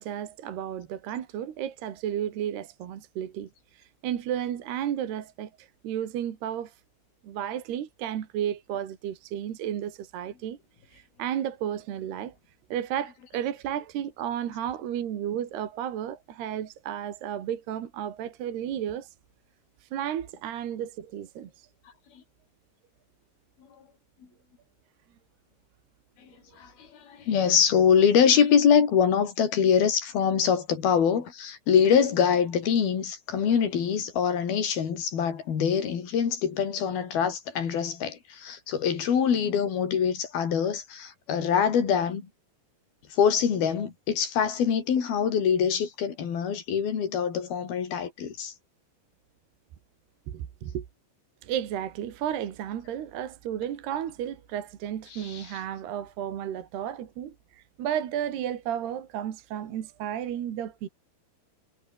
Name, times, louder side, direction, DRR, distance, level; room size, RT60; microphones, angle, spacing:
voice 1, 0.0-6.7 7.2-10.6 10.9-12.3 12.7-19.1 19.9-21.7 50.3-50.9 51.4-60.9, right 10 dB, 70° right, 4.1 m, -33 dB
voice 2, 26.6-42.3 43.1-48.5 55.1-55.5, left 7 dB, 60° left, 5.3 m, -24 dB
omnidirectional pair, 5.0 m